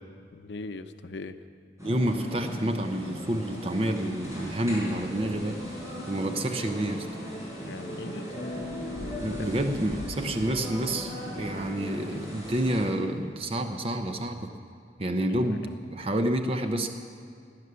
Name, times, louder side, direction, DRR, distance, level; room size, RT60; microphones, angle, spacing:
voice 1, 0.3-1.4 7.6-8.3 9.2-9.5 15.3-15.6, left 3 dB, 85° left, 9 dB, 0.7 m, -40 dB
sound 1, 1.8-12.9, equal, 15° right, 4.6 m, -38 dB
voice 2, 1.8-5.8 6.1-7.1 9.2-14.5 15.0-16.9, right 1 dB, 35° right, 6 dB, 0.7 m, -29 dB
Bass guitar, 8.4-12.7, left 3 dB, 45° left, 1.2 m, -44 dB
17.5 x 9.6 x 6.8 m, 2.3 s
head